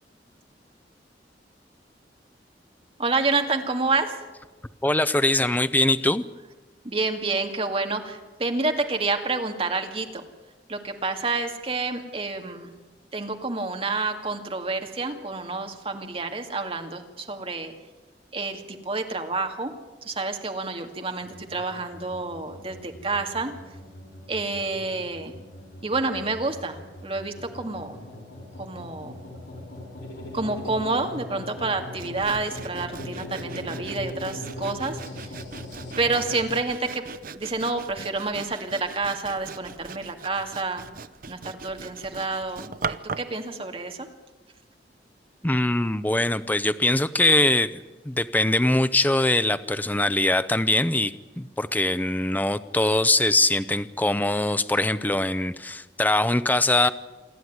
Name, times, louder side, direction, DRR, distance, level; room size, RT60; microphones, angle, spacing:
voice 1, 3.0-4.2 6.8-10.2 10.7-12.7 13.1-17.7 18.3-19.7 20.0-23.5 24.3-25.3 25.8-28.0 28.6-29.2 30.3-35.3 36.0-37.1 37.3-40.9 41.3-44.1, right 3 dB, 30° right, 5 dB, 2.1 m, -29 dB
voice 2, 4.8-6.2 45.4-56.9, left 2 dB, 10° left, 13 dB, 0.6 m, -22 dB
sound 1, 21.2-36.5, left 1 dB, 80° left, 6.5 m, -40 dB
Sawing, 32.0-43.4, right 5 dB, 50° right, 0.7 m, -40 dB
27.5 x 11.5 x 9.4 m, 1.2 s
head